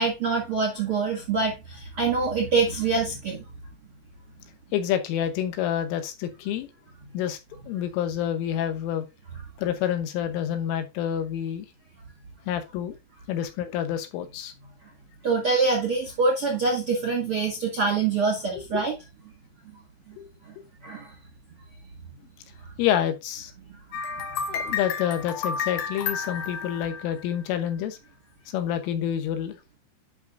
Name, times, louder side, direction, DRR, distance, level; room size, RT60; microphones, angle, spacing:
voice 1, 0.0-3.4 15.2-18.9 20.8-21.1, right 4 dB, 60° right, 1.5 m, -25 dB
voice 2, 4.7-6.7 7.1-7.4 7.7-9.1 9.6-11.7 12.5-13.0 13.3-14.5 18.6-18.8 20.2-20.3 22.8-23.5 24.5-28.0 28.5-29.6, left 10 dB, 85° left, 3.6 m, -28 dB
sound 1, 23.9-27.7, left 6 dB, 70° left, 2.5 m, -31 dB
10.0 x 6.0 x 2.6 m
omnidirectional pair, 5.6 m